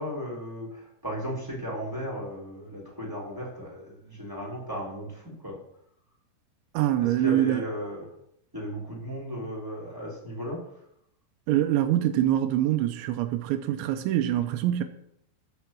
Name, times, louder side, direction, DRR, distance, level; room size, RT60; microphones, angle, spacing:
voice 1, 0.0-5.6 7.0-8.1 8.5-10.6, equal, 5° right, 2.0 m, -35 dB
voice 2, 6.7-7.6 11.5-14.8, right 12 dB, 90° right, 2.6 m, -24 dB
11.5 x 4.6 x 7.4 m
omnidirectional pair, 6.0 m